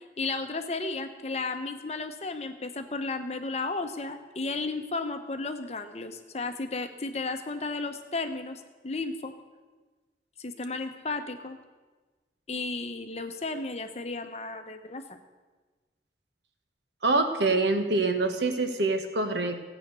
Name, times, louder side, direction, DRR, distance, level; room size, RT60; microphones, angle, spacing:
voice 1, 0.2-9.3 10.4-11.6 12.5-15.2, left 3 dB, 35° left, 7 dB, 0.9 m, -34 dB
voice 2, 17.0-19.6, right 3 dB, 80° right, 7 dB, 1.3 m, -25 dB
14.5 x 8.8 x 6.8 m, 1.3 s
head